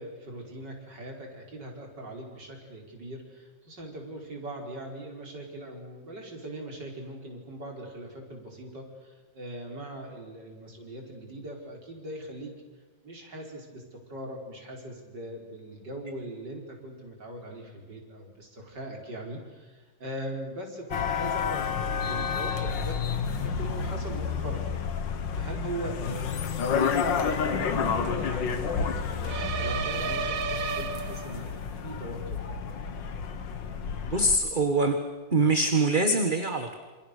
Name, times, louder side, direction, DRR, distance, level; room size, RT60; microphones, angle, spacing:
voice 1, 0.0-12.5 13.0-23.0 23.4-25.0 25.3-32.5, right 1 dB, 65° right, 1 dB, 5.5 m, -40 dB
sound 1, 20.9-34.4, left 6 dB, 80° left, 2.2 m, -30 dB
sound 2, 29.3-31.6, right 6 dB, 85° right, 2.0 m, -32 dB
voice 2, 34.1-35.0 35.3-36.7, right 2 dB, 25° right, 6 dB, 1.6 m, -24 dB
27.5 x 27.5 x 6.8 m, 1.3 s
omnidirectional pair, 2.0 m